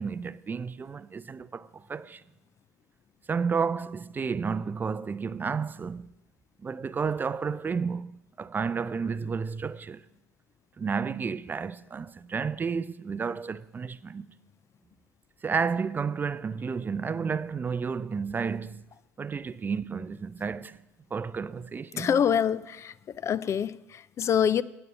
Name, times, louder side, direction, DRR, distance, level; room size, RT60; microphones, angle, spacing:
voice 1, 0.0-2.2 3.3-6.1 6.6-10.0 10.8-14.3 15.4-18.8 19.2-20.8 21.1-22.2, right 5 dB, 25° right, 0.4 m, -31 dB
voice 2, 22.0-24.6, left 8 dB, 40° left, 0.4 m, -26 dB
9.2 x 8.7 x 6.7 m
hypercardioid pair, 65°, 7 cm